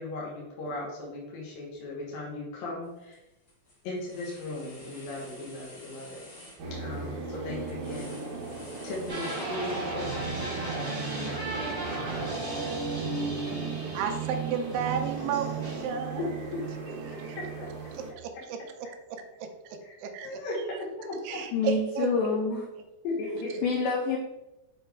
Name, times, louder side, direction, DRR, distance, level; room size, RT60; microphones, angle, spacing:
voice 1, 0.0-3.2 3.8-6.2 6.8-8.2 8.8-10.6 16.2-16.3 16.8-17.7 18.3-18.4 19.8-19.9 20.2-20.7 21.0-21.4 23.0-23.6, left 2 dB, 65° left, -5 dB, 3.0 m, -37 dB
sound 1, 2.8-3.2 3.5-10.0, left 1 dB, 45° left, 1.5 m, -51 dB
sound 2, 6.6-18.1, right 5 dB, 65° right, 2.0 m, -37 dB
sound 3, 9.1-15.9, right 1 dB, 20° right, 0.6 m, -35 dB
voice 2, 13.9-16.3 17.1-17.2 18.2-20.4 21.2-22.4, right 6 dB, 85° right, 4 dB, 2.7 m, -33 dB
voice 3, 21.5-22.6 23.3-24.2, left 4 dB, 85° left, -1 dB, 1.9 m, -27 dB
7.6 x 4.2 x 3.6 m, 0.95 s
omnidirectional pair, 4.6 m